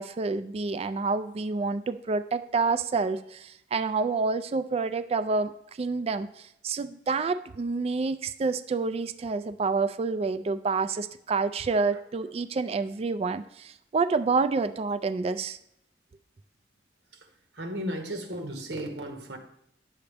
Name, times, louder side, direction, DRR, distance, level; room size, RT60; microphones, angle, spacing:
voice 1, 0.0-5.5 5.8-15.6, right 4 dB, 35° right, 0.3 m, -28 dB
voice 2, 17.5-19.4, equal, 85° right, 1.4 m, -34 dB
10.0 x 7.0 x 3.4 m
head